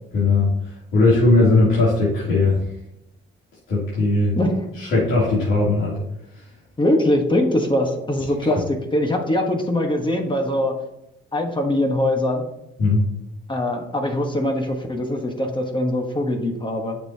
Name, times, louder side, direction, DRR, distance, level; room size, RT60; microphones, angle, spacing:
voice 1, 0.1-0.5 0.9-2.6 3.7-4.3 4.8-6.0 8.4-8.6 12.8-13.0, left 2 dB, 80° left, -8 dB, 3.0 m, -18 dB
voice 2, 6.8-10.7 11.3-12.4 13.5-17.0, left 1 dB, 25° left, 3 dB, 1.3 m, -22 dB
8.9 x 6.6 x 2.8 m, 0.85 s
cardioid pair, 90°, 20 cm